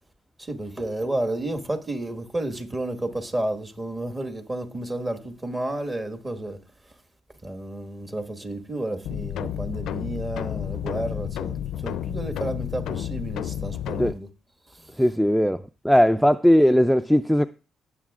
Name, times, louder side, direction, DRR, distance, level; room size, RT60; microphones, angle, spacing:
voice 1, 0.4-6.6 7.4-14.3 14.7-14.9, right 1 dB, 20° right, 1.6 m, -31 dB
sound 1, 9.0-14.1, left 10 dB, 80° left, 0.4 m, -31 dB
voice 2, 15.0-17.5, equal, ahead, 0.3 m, -19 dB
17.5 x 7.2 x 2.4 m
cardioid pair, 90°, 0 cm